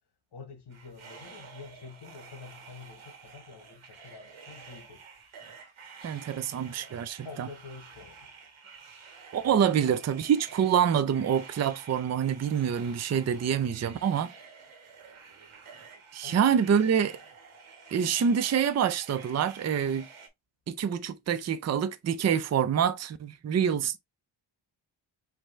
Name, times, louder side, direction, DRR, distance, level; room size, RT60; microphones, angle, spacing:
voice 1, 0.3-5.0 6.5-6.6 7.2-8.3 9.4-9.6 16.2-16.4, left 5 dB, 55° left, 1.4 m, -47 dB
sound 1, 0.7-20.3, right 5 dB, 80° right, 1.6 m, -50 dB
voice 2, 6.0-7.5 9.3-14.3 16.1-17.2 17.9-20.1 20.7-24.0, right 8 dB, 35° right, 0.5 m, -26 dB
5.4 x 2.8 x 3.1 m
cardioid pair, 110°, 48 cm